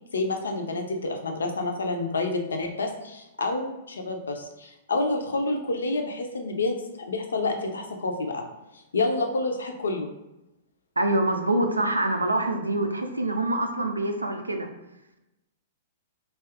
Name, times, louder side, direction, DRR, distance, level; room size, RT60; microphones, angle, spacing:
voice 1, 0.1-6.8 7.1-8.4 8.9-10.1, left 2 dB, 70° left, 4 dB, 0.5 m, -28 dB
voice 2, 11.0-14.7, right 1 dB, 85° right, 5 dB, 0.4 m, -25 dB
2.7 x 2.3 x 3.4 m, 0.96 s
figure-of-eight pair, 105°, 0 cm